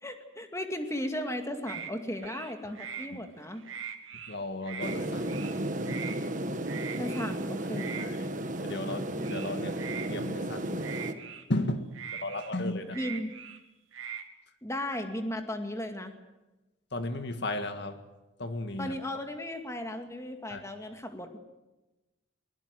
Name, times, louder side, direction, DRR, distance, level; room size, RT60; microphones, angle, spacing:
voice 1, 0.0-3.6 7.0-8.1 12.9-13.3 14.6-16.1 18.8-21.4, left 1 dB, 15° left, 5 dB, 2.3 m, -36 dB
sound 1, 1.7-1.9 2.2-3.1 3.5-4.3 4.6-5.0 5.2-5.5 5.9-6.2 6.7-7.3 7.7-8.1 9.2-10.1 10.8-11.4 11.9-13.6 13.9-14.2, right 8 dB, 85° right, 2.7 m, -41 dB
voice 2, 4.3-6.0 8.0-10.8 11.5-11.9 12.1-13.0 16.9-18.0 18.4-19.0 20.5-20.6, left 1 dB, 60° left, 8 dB, 1.8 m, -35 dB
sound 2, 4.8-11.1, right 1 dB, 40° right, 1.6 m, -34 dB
23.0 x 22.5 x 7.8 m, 1.1 s
head